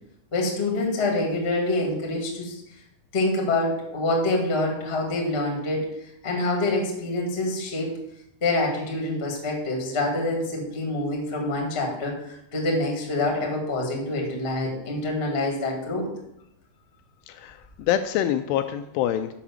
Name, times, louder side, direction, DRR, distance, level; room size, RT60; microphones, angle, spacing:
voice 1, 0.3-2.5 3.1-5.9 6.2-8.0 8.4-16.1, left 2 dB, 35° left, 0 dB, 1.0 m, -26 dB
voice 2, 17.3-19.3, left 11 dB, 85° left, 8 dB, 2.5 m, -26 dB
7.4 x 5.9 x 7.1 m, 0.80 s
omnidirectional pair, 5.1 m